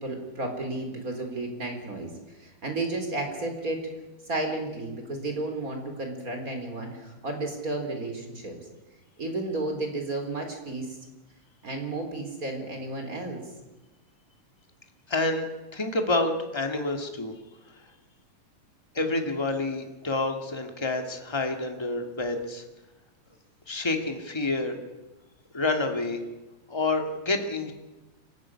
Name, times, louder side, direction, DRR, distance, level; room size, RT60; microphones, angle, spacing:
voice 1, 0.0-3.9 4.3-8.6 9.2-11.0 11.6-13.4, right 2 dB, 25° right, 4 dB, 4.0 m, -32 dB
voice 2, 15.1-15.5 15.7-17.3 18.9-22.6 23.7-24.8 25.5-26.2 26.7-27.7, left 2 dB, 10° left, 4 dB, 1.6 m, -28 dB
25.0 x 15.0 x 9.8 m, 1.1 s
omnidirectional pair, 3.7 m